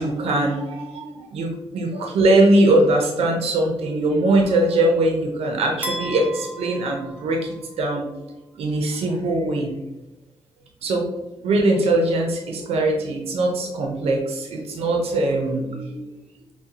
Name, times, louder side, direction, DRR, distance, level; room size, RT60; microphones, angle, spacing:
voice 1, 0.0-8.0 8.6-9.7 10.8-11.1 11.4-16.1, right 2 dB, 90° right, 1 dB, 0.6 m, -21 dB
sound 1, 5.8-8.0, right 1 dB, 15° right, 0.6 m, -34 dB
5.8 x 2.2 x 2.7 m, 1.0 s
cardioid pair, 120°, 10 cm